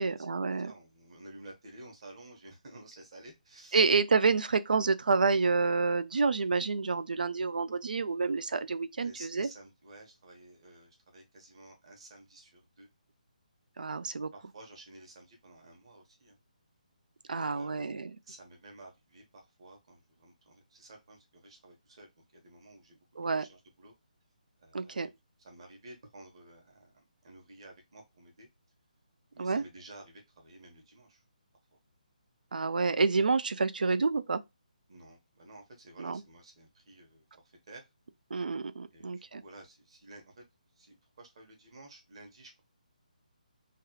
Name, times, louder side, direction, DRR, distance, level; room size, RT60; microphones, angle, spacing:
voice 1, 0.0-0.7 3.7-9.5 13.8-14.3 17.3-18.1 23.2-23.4 24.7-25.1 29.4-29.6 32.5-34.4 36.0-36.2 38.3-39.4, right 4 dB, 85° right, 0.4 m, -28 dB
voice 2, 0.6-3.8 9.0-12.9 14.3-16.4 17.3-23.0 23.3-23.9 24.6-28.5 29.3-31.2 31.7-31.8 34.9-37.9 38.9-40.4 40.8-42.6, right 2 dB, 40° right, 1.2 m, -53 dB
3.2 x 2.3 x 2.8 m
hypercardioid pair, 175°, 5 cm